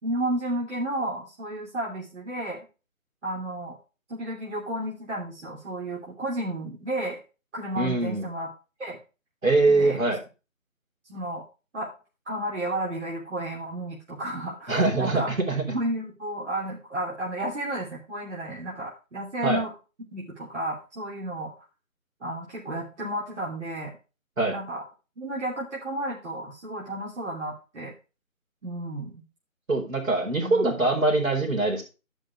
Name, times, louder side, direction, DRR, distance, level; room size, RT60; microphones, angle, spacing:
voice 1, 0.0-2.6 3.2-3.8 4.1-7.2 7.5-8.5 8.8-9.0 9.7-10.0 11.1-11.4 11.7-11.9 12.3-15.3 15.7-19.7 20.1-21.5 22.2-24.0 24.5-24.8 25.2-27.9 28.6-29.2 30.4-30.9, right 1 dB, 55° right, -4 dB, 3.2 m, -32 dB
voice 2, 7.8-8.3 9.4-10.2 14.7-15.6 19.4-19.6 24.4-24.5 29.7-31.8, right 2 dB, 75° right, 1 dB, 4.4 m, -23 dB
12.0 x 5.5 x 4.6 m, 0.32 s
figure-of-eight pair, 155°, 41 cm